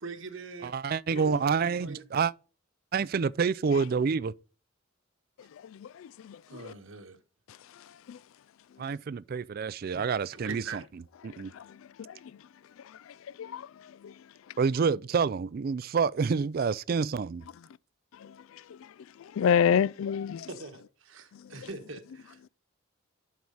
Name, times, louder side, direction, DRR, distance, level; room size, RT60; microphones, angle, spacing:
voice 1, 0.0-0.7 1.2-2.0 6.5-7.2 9.9-10.0 10.3-10.8 20.5-22.4, right 4 dB, 65° right, 1.3 m, -43 dB
voice 2, 0.6-2.3 2.9-4.3 8.8-10.6 11.2-11.5 14.6-17.4, right 5 dB, 45° right, 0.3 m, -28 dB
voice 3, 5.8-6.4 8.1-8.2 12.0-12.1 13.4-13.7 14.0-14.1 18.2-18.3 19.4-20.5, left 7 dB, 75° left, 0.3 m, -27 dB
11.5 x 4.8 x 4.0 m
head